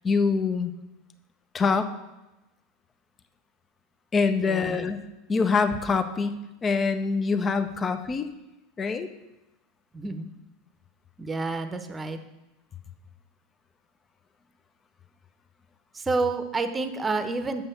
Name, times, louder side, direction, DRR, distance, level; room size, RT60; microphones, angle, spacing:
voice 1, 0.0-0.7 1.5-1.9 4.1-5.0 5.3-8.3 8.8-9.1, left 4 dB, 25° left, 9 dB, 0.8 m, -25 dB
voice 2, 4.3-4.9 9.9-10.3 11.2-12.2 15.9-17.6, right 3 dB, 20° right, 8 dB, 1.0 m, -29 dB
7.0 x 5.5 x 6.8 m, 0.99 s
hypercardioid pair, 85°, 0 cm